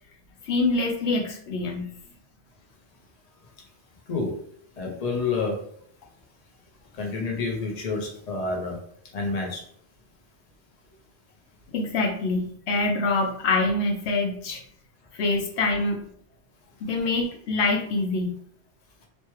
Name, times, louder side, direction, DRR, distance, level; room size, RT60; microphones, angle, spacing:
voice 1, 0.4-1.9 11.7-14.6 15.1-16.0 16.8-18.4, left 3 dB, 80° left, 1 dB, 0.9 m, -25 dB
voice 2, 4.8-5.6 7.0-8.8 9.1-9.6, left 4 dB, 40° left, 0 dB, 0.8 m, -28 dB
3.1 x 2.2 x 3.0 m, 0.65 s
omnidirectional pair, 1.1 m